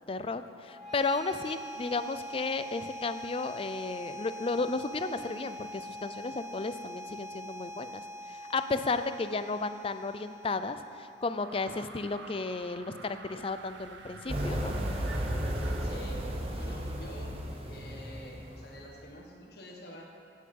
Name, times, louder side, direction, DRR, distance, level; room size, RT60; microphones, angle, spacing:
voice 1, 0.0-8.0 8.3-14.7, left 3 dB, 30° left, 11 dB, 0.4 m, -33 dB
sound 1, 0.6-11.6, equal, ahead, 2.2 m, -44 dB
sound 2, 11.4-15.9, right 4 dB, 80° right, 0.8 m, -48 dB
sound 3, 14.3-19.0, equal, 30° right, 1.1 m, -34 dB
voice 2, 15.8-16.3 16.6-17.4 17.6-20.0, left 1 dB, 60° left, -1 dB, 1.6 m, -47 dB
15.5 x 6.5 x 5.4 m, 2.6 s
head